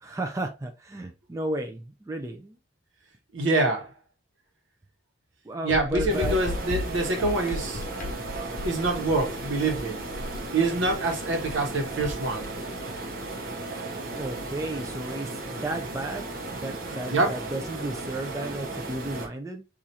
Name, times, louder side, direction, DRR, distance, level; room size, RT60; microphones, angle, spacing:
voice 1, 0.0-2.6 5.4-6.4 14.1-19.6, right 1 dB, 15° right, 0.3 m, -34 dB
voice 2, 3.3-3.9 5.6-7.8 8.6-10.0 10.5-12.5 17.1-17.4, right 2 dB, 85° right, 1.0 m, -25 dB
sound 1, 5.7-12.5, left 2 dB, 45° left, 0.5 m, -35 dB
sound 2, 6.1-19.3, right 2 dB, 50° right, 0.8 m, -35 dB
4.4 x 2.4 x 2.7 m
head